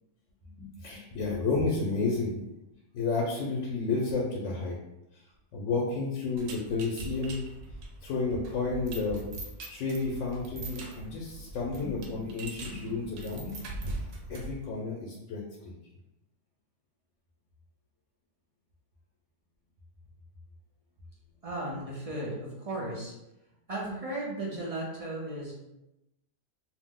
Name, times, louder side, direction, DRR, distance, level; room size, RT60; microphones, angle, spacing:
voice 1, 0.4-2.5 2.9-4.8 5.1-5.2 5.5-7.5 8.0-9.3 9.7-14.0 14.3-15.7, left 3 dB, 75° left, -3 dB, 0.9 m, -31 dB
sound 1, 6.4-14.6, right 2 dB, 85° right, 1.0 m, -41 dB
voice 2, 21.4-23.1 23.7-25.5, right 1 dB, 40° right, -5 dB, 0.6 m, -35 dB
2.5 x 2.0 x 3.6 m, 0.92 s
omnidirectional pair, 1.3 m